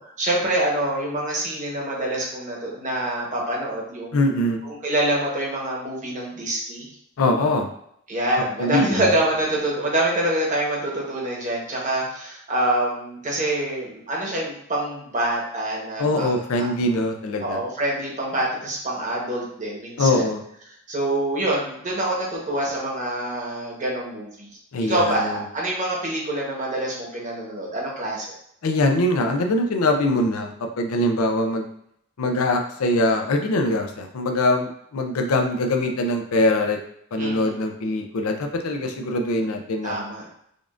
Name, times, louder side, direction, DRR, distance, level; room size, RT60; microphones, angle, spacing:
voice 1, 0.0-4.2 4.6-6.9 8.1-16.7 17.4-20.3 20.9-24.5 24.8-28.3 37.2-37.5 39.8-40.3, right 1 dB, 35° right, -3 dB, 1.1 m, -26 dB
voice 2, 4.1-4.6 7.2-7.7 8.6-9.2 16.0-17.6 20.0-20.4 24.7-25.4 28.6-31.7 32.2-36.8 37.1-40.0, left 1 dB, 85° left, 4 dB, 0.5 m, -22 dB
5.1 x 2.5 x 2.4 m, 0.72 s
head